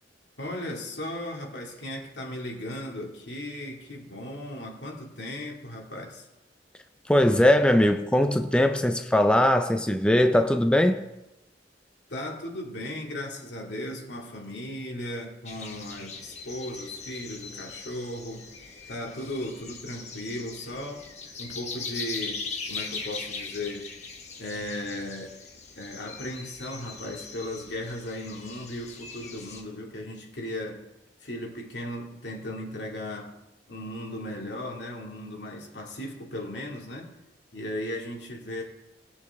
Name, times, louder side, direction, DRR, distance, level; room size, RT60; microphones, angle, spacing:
voice 1, 0.4-6.2 12.1-18.5 18.9-21.0 21.4-22.4 22.7-23.8 24.4-25.3 25.8-30.8 31.2-33.3 33.7-37.1 37.5-38.6, left 1 dB, 75° left, -1 dB, 2.3 m, -36 dB
voice 2, 7.1-11.1, left 1 dB, 5° left, 7 dB, 0.5 m, -21 dB
sound 1, 15.5-29.6, left 4 dB, 40° left, 1.4 m, -40 dB
19.0 x 7.0 x 3.6 m, 0.95 s
head